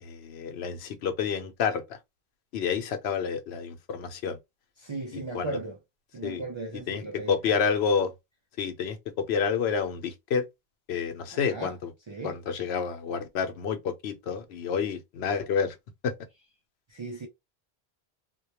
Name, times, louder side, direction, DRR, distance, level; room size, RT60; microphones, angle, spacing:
voice 1, 0.0-2.0 2.5-4.4 5.1-5.6 6.2-6.4 6.9-7.0 7.3-8.1 8.6-10.5 10.9-11.9 12.2-15.8 16.0-16.1, left 6 dB, 80° left, 0.8 m, -29 dB
voice 2, 4.8-5.8 6.1-7.6 11.3-11.7 12.1-12.4 16.9-17.3, right 2 dB, 45° right, 0.3 m, -37 dB
2.2 x 2.2 x 2.9 m
omnidirectional pair, 1.1 m